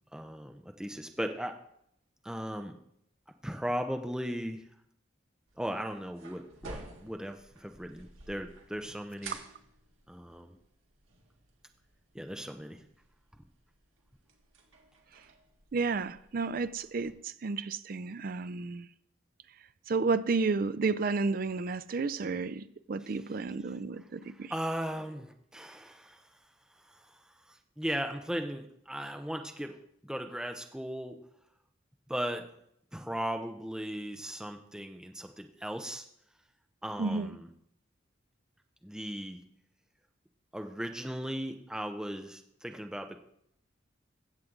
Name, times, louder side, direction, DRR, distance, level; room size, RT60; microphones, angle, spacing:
voice 1, 0.1-1.6 2.2-2.7 3.4-4.6 5.6-9.4 10.1-10.6 12.1-12.8 24.3-26.3 26.8-29.8 30.0-31.2 32.1-32.5 32.9-36.1 36.8-37.5 38.8-39.4 40.5-43.2, equal, 5° right, 0.6 m, -37 dB
sound 1, 5.5-17.1, right 3 dB, 90° right, 1.7 m, -52 dB
voice 2, 15.7-18.9 19.9-24.5 37.0-37.4, right 4 dB, 45° right, 0.4 m, -32 dB
15.5 x 7.5 x 3.8 m
head